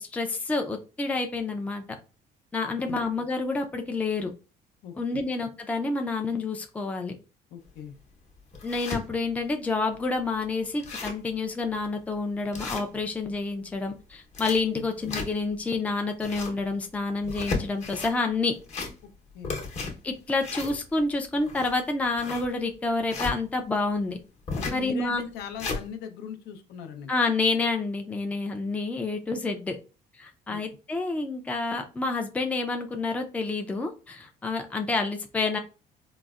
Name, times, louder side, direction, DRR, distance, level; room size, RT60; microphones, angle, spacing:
voice 1, 0.0-1.8 2.5-4.3 5.0-7.2 8.6-18.6 20.0-24.2 24.7-25.3 27.1-29.8 30.2-35.6, left 3 dB, 10° left, 4 dB, 0.3 m, -28 dB
voice 2, 4.8-5.2 7.5-8.0 14.7-14.9 19.3-19.6 24.6-27.1 30.5-30.6, left 7 dB, 75° left, 6 dB, 0.6 m, -39 dB
sound 1, 7.7-7.8 8.3-9.0 9.6-9.7 9.9-10.0 10.4-10.5 10.7-11.3 11.7-11.9 12.5-13.3 14.1-15.6 16.0-16.6 17.2-18.1 18.6-19.2 19.4-23.4 24.5-24.8 25.3-25.8, left 4 dB, 40° left, 0.8 m, -34 dB
3.8 x 2.0 x 2.3 m, 0.33 s
cardioid pair, 110°, 17 cm